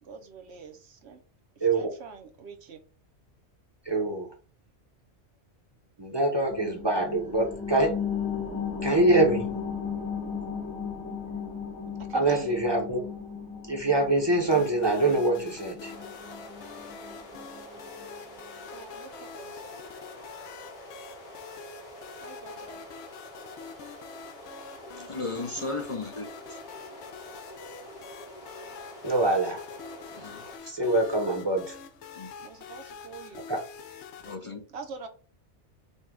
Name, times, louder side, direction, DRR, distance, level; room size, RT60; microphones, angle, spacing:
voice 1, 0.0-1.2 1.6-2.8 12.0-12.6 18.7-19.8 22.2-22.8 32.4-33.4 34.7-35.1, right 5 dB, 65° right, 1.0 m, -44 dB
voice 2, 1.6-1.9 3.8-4.3 6.0-8.0 8.8-9.6 12.1-13.0 13.6-15.9 29.0-29.7 30.6-31.8 33.5-33.6, right 2 dB, 25° right, 0.8 m, -25 dB
sound 1, 6.5-17.6 18.0-18.1, left 6 dB, 10° left, 0.9 m, -36 dB
sound 2, 14.5-34.4, left 6 dB, 70° left, 0.8 m, -46 dB
sound 3, 15.8-30.6, equal, 55° left, 1.4 m, -46 dB
voice 3, 25.1-26.6 30.1-30.4 32.2-32.3 34.2-34.6, left 3 dB, 35° left, 0.6 m, -35 dB
5.3 x 2.3 x 3.7 m
omnidirectional pair, 1.2 m